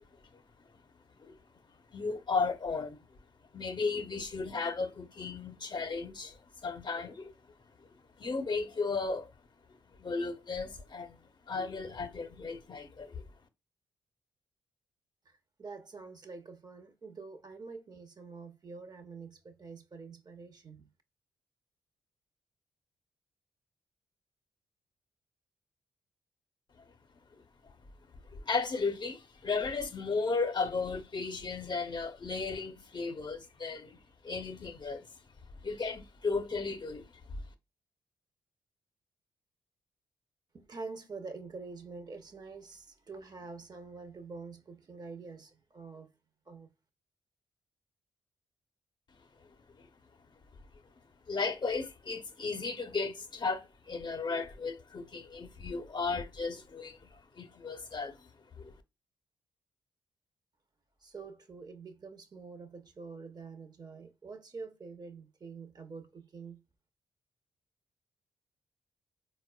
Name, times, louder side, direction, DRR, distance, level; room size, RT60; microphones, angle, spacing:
voice 1, 1.9-3.0 3.5-7.3 7.8-7.9 8.2-9.3 10.0-11.2 11.5-13.2 27.6-27.7 28.3-35.1 35.6-37.0 49.8-49.9 51.3-58.3 58.6-58.8, left 4 dB, 45° left, 0.6 m, -35 dB
voice 2, 15.3-20.9 40.5-46.1 46.5-46.7 61.0-66.6, right 4 dB, 40° right, 0.6 m, -46 dB
4.1 x 2.1 x 2.2 m
hypercardioid pair, 45°, 11 cm